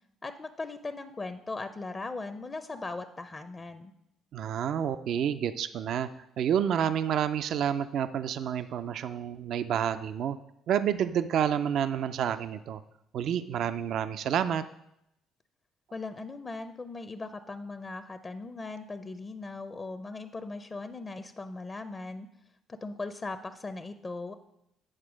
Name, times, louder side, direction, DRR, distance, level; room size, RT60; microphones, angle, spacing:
voice 1, 0.2-3.9 15.9-22.3 22.7-24.3, left 3 dB, 30° left, 10 dB, 0.6 m, -39 dB
voice 2, 4.3-6.1 6.4-10.4 10.7-12.8 13.1-14.6, right 9 dB, 70° right, 12 dB, 0.4 m, -29 dB
8.8 x 4.4 x 6.2 m, 0.81 s
supercardioid pair, 75°, 0 cm